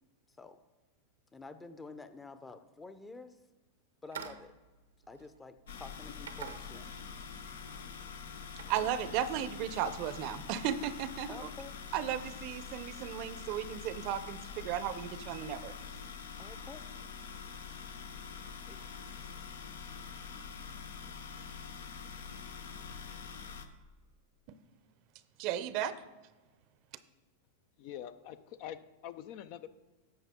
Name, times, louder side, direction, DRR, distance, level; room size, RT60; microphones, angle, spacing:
voice 1, 0.3-0.6 1.3-3.4 4.0-4.5 5.1-7.0 11.3-11.7 16.4-16.8 18.7-18.9, left 3 dB, 15° left, 0.7 m, -49 dB
sound 1, 4.0-5.7 6.2-7.1 7.4-7.8 8.1-9.7, right 7 dB, 90° right, 0.8 m, -48 dB
sound 2, 5.7-23.7, left 6 dB, 80° left, 0.8 m, -45 dB
voice 2, 8.7-11.5 11.9-15.7 25.4-25.9, right 10 dB, 50° right, 0.6 m, -35 dB
voice 3, 27.8-29.7, left 10 dB, 55° left, 0.5 m, -45 dB
11.0 x 7.5 x 3.7 m
hypercardioid pair, 110°, 0 cm